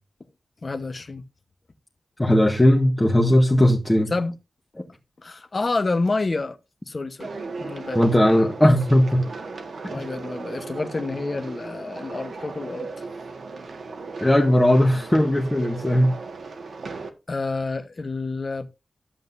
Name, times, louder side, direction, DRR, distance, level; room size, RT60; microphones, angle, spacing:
voice 1, 0.6-1.2 4.1-4.4 5.2-6.6 6.9-7.3 7.6-8.0 9.9-12.9 17.3-18.7, left 3 dB, 40° left, 1.1 m, -28 dB
voice 2, 2.2-4.1 7.9-9.3 14.2-16.1, left 1 dB, 15° left, 1.4 m, -18 dB
sound 1, 7.2-17.1, right 4 dB, 75° right, 1.6 m, -36 dB
13.0 x 7.7 x 2.6 m
wide cardioid pair, 125°, 0 cm